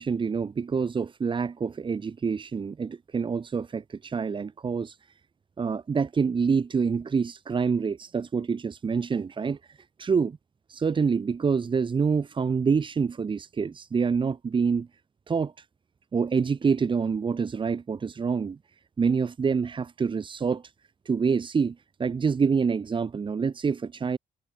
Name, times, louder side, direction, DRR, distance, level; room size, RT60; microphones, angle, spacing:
voice 1, 0.0-5.0 5.6-10.4 10.7-14.9 15.3-15.6 16.1-18.6 19.0-20.6 21.1-24.2, right 5 dB, 30° right, 3.8 m, -26 dB
wide cardioid pair, 165°, 16 cm